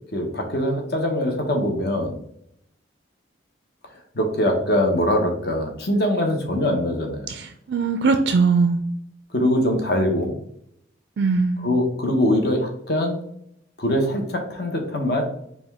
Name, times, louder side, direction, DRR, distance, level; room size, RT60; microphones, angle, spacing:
voice 1, 0.1-2.2 4.1-7.3 9.3-10.3 11.6-13.2 13.8-15.3, left 1 dB, 55° left, 3 dB, 0.9 m, -22 dB
voice 2, 7.3-8.8 11.2-11.7, right 4 dB, 60° right, 7 dB, 0.3 m, -21 dB
5.0 x 2.3 x 3.5 m, 0.71 s
head